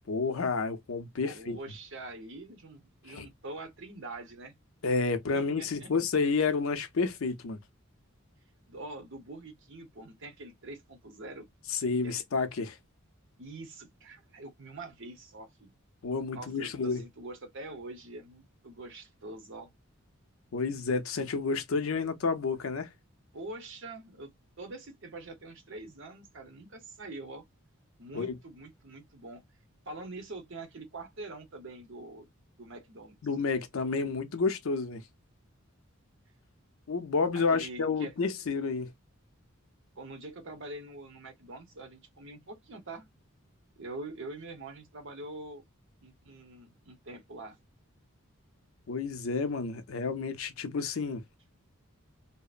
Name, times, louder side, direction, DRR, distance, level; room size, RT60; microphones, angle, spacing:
voice 1, 0.1-1.6 3.2-3.3 4.8-7.6 11.7-12.8 16.0-17.0 20.5-22.9 28.1-28.3 33.2-35.0 36.9-38.9 48.9-51.2, left 4 dB, 75° left, 0.6 m, -30 dB
voice 2, 1.2-4.5 5.3-5.9 8.7-11.5 12.0-12.2 13.4-15.7 16.3-19.7 23.3-24.3 24.6-27.5 28.0-29.4 29.9-32.3 32.6-33.2 37.3-38.1 40.0-43.1 43.8-45.6 46.0-47.6, right 2 dB, 60° right, 0.8 m, -44 dB
2.8 x 2.0 x 2.4 m
head